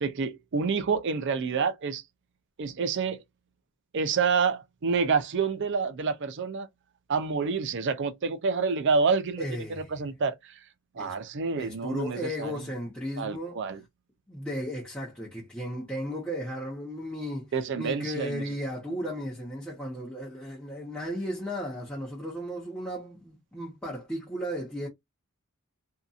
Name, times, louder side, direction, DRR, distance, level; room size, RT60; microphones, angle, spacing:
voice 1, 0.0-2.0 2.6-3.2 3.9-6.7 7.1-9.4 9.7-10.3 11.0-12.5 13.2-13.8 17.5-18.4, right 5 dB, 55° right, 0.4 m, -28 dB
voice 2, 9.4-9.9 11.0-11.2 11.6-13.6 14.3-24.9, equal, 5° left, 0.9 m, -35 dB
2.7 x 2.4 x 2.4 m
head